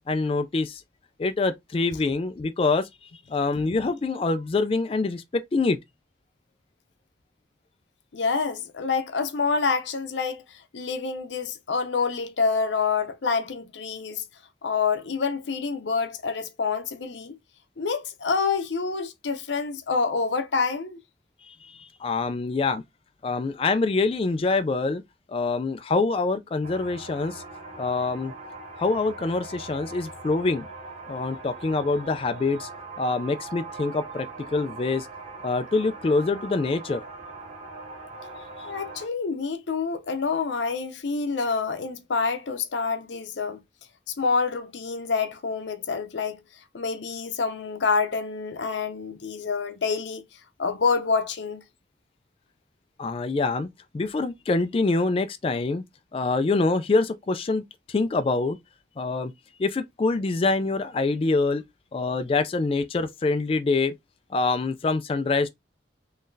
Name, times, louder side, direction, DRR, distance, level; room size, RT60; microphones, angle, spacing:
voice 1, 0.1-0.8 1.2-5.8 21.4-22.8 23.2-25.0 25.3-27.4 27.8-28.3 28.8-30.7 31.1-32.7 33.0-35.1 35.4-37.0 53.0-53.7 53.9-55.8 56.1-57.6 57.9-58.6 59.0-59.3 59.6-61.6 61.9-63.9 64.3-65.5, left 3 dB, 30° left, 0.3 m, -25 dB
voice 2, 8.1-14.2 14.6-17.4 17.8-21.0 38.6-43.6 44.1-46.4 46.7-50.2 50.6-51.6, left 5 dB, 85° left, 0.6 m, -27 dB
sound 1, 26.6-39.1, right 3 dB, 45° right, 1.6 m, -41 dB
3.9 x 3.1 x 2.6 m
head